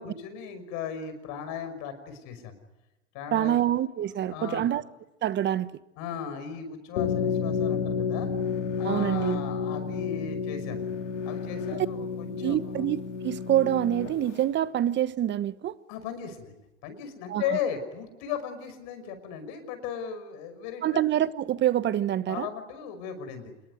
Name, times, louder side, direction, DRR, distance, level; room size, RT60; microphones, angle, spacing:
voice 1, 0.0-2.6 3.1-3.6 4.3-4.6 6.0-8.3 8.8-10.9 11.3-12.9 15.9-21.1 22.3-23.5, left 7 dB, 55° left, 5.8 m, -36 dB
voice 2, 3.3-4.8 5.2-5.7 8.8-9.4 11.7-11.9 12.4-15.7 17.3-17.4 20.8-22.5, right 11 dB, 30° right, 1.2 m, -26 dB
sound 1, 7.0-14.4, left 6 dB, 80° left, 3.5 m, -31 dB
27.0 x 21.5 x 9.6 m
hypercardioid pair, 110°, 35 cm